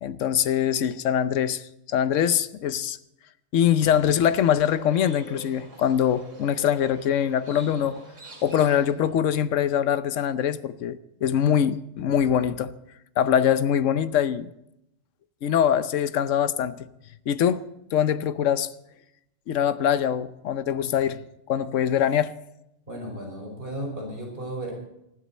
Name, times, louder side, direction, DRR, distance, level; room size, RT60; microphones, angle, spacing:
voice 1, 0.0-1.6 1.9-3.0 3.5-8.0 8.4-12.7 13.2-14.5 15.4-16.9 17.3-17.6 17.9-18.7 19.5-21.2 21.5-22.3, left 9 dB, 80° left, 1.1 m, -23 dB
Livestock farm animals working animals, 3.8-9.2, right 4 dB, 80° right, 3.1 m, -46 dB
voice 2, 22.9-24.7, right 1 dB, 45° right, 5.4 m, -34 dB
19.5 x 13.5 x 4.2 m
omnidirectional pair, 1.3 m